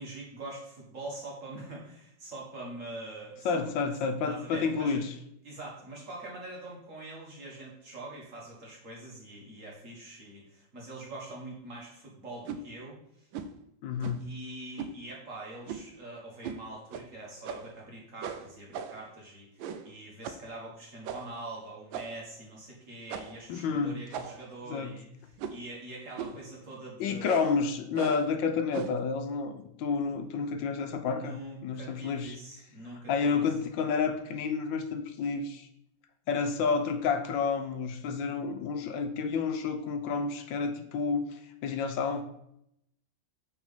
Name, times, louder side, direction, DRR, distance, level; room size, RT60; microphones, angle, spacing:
voice 1, 0.0-3.6 4.3-5.0 5.4-13.3 14.2-27.3 31.0-33.4, right 2 dB, 45° right, -3 dB, 2.0 m, -44 dB
voice 2, 3.4-5.1 13.8-14.3 23.5-24.0 24.7-24.9 27.0-32.4 33.1-35.7 36.3-42.2, left 5 dB, 80° left, 8 dB, 1.3 m, -30 dB
sound 1, 12.4-12.6 13.3-13.6 14.0-14.3 14.8-15.0 15.7-16.0 16.4-16.6 16.9-17.1 17.4-17.8 18.2-19.1 19.6-19.9 20.2-20.5 21.0-21.4 21.9-22.3 23.1-23.4 24.1-24.6 25.4-25.7 26.2-26.5 27.2-27.6 27.9-28.3 28.7-29.0, right 7 dB, 85° right, 1.3 m, -39 dB
6.0 x 4.1 x 5.6 m, 0.78 s
omnidirectional pair, 2.1 m